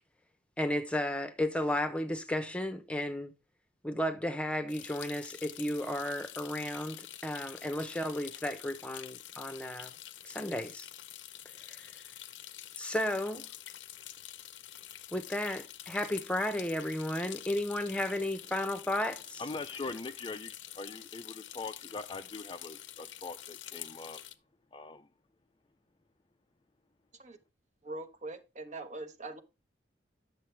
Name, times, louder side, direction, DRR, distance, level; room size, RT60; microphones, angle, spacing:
voice 1, 0.6-3.3 3.8-9.9 10.2-10.9 11.7-11.9 12.8-13.5 15.1-19.4, left 1 dB, 5° left, 0.8 m, -33 dB
sound 1, 4.7-24.3, left 12 dB, 90° left, 0.7 m, -47 dB
voice 2, 19.4-24.2 24.7-25.1, left 3 dB, 25° left, 0.4 m, -42 dB
voice 3, 27.8-29.4, right 2 dB, 40° right, 1.1 m, -42 dB
10.0 x 6.8 x 3.3 m
head